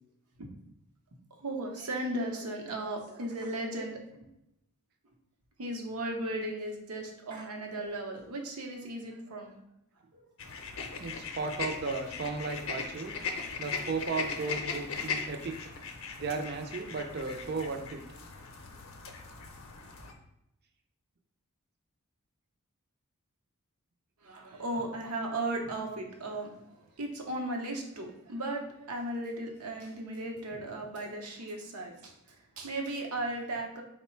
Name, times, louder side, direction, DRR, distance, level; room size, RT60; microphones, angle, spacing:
voice 1, 1.4-4.3 5.6-9.5 10.1-10.2 10.8-11.1 24.2-33.8, right 1 dB, 85° right, 2 dB, 0.8 m, -36 dB
sound 1, 10.4-20.1, left 5 dB, 60° left, 0.6 m, -39 dB
voice 2, 11.0-13.1 13.6-15.5 16.2-18.0, right 4 dB, 45° right, 4 dB, 0.5 m, -35 dB
3.8 x 2.1 x 4.3 m, 0.82 s
head